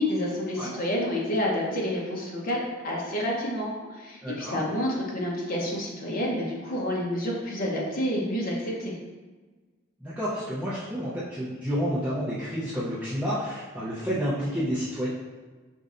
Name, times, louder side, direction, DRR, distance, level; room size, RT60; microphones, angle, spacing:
voice 1, 0.0-8.9, left 1 dB, 45° left, -3 dB, 0.8 m, -29 dB
voice 2, 4.2-4.6 10.0-15.1, equal, 10° right, -10 dB, 0.6 m, -30 dB
5.2 x 3.1 x 2.5 m, 1.3 s
head